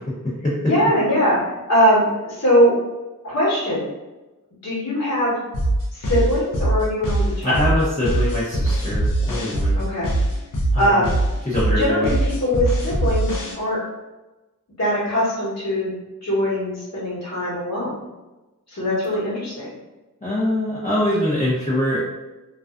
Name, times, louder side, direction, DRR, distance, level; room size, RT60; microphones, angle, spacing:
voice 1, 0.1-0.7 7.4-9.8 10.7-11.0 11.5-12.1 20.2-22.0, left 1 dB, 20° left, -9 dB, 0.7 m, -23 dB
voice 2, 0.6-1.4 1.7-2.8 3.2-3.9 4.6-5.4 5.9-7.7 9.8-10.1 10.8-11.1 11.7-13.8 14.8-15.9 16.2-18.1 18.7-19.7, equal, 45° left, -7 dB, 1.1 m, -21 dB
sound 1, 5.5-13.5, right 1 dB, 60° left, 0.7 m, -22 dB
2.4 x 2.3 x 2.4 m, 1.1 s
wide cardioid pair, 55°, 36 cm